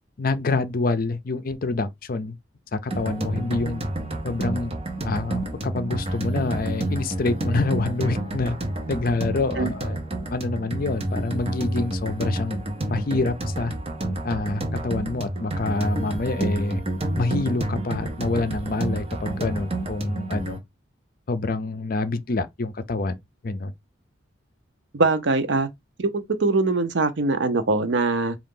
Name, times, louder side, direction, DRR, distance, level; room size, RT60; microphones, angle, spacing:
voice 1, 0.2-2.4 2.7-3.8 4.2-4.7 5.0-8.6 8.9-10.0 10.3-12.6 12.9-13.7 14.2-16.8 17.1-20.6 21.3-23.2 23.4-23.7, left 3 dB, 45° left, 0.5 m, -27 dB
sound 1, 2.9-20.6, right 1 dB, 30° right, 0.8 m, -29 dB
voice 2, 24.9-25.7 26.0-28.4, right 3 dB, 65° right, 0.6 m, -22 dB
3.7 x 2.4 x 3.7 m
head